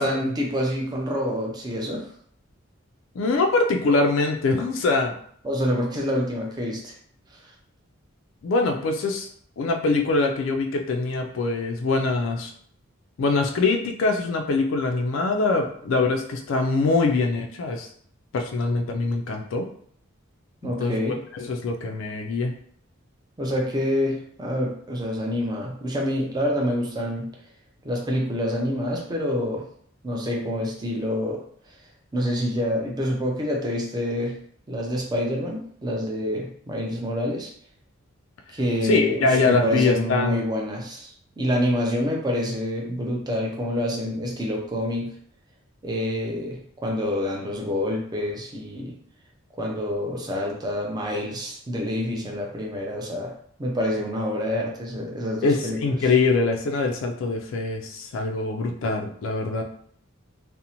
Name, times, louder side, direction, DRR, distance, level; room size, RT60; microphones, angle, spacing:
voice 1, 0.0-2.0 5.4-6.9 20.6-21.2 23.4-27.3 27.8-29.6 30.0-31.4 32.1-34.3 34.7-37.5 38.5-45.1 45.8-48.9 49.6-53.3 53.6-56.0, equal, 20° right, -1 dB, 0.4 m, -27 dB
voice 2, 3.2-5.1 8.4-9.3 9.6-12.5 13.2-17.9 18.3-19.7 20.6-22.5 38.8-40.4 55.4-59.6, left 3 dB, 65° left, 3 dB, 0.3 m, -23 dB
2.5 x 2.0 x 2.8 m, 0.62 s
head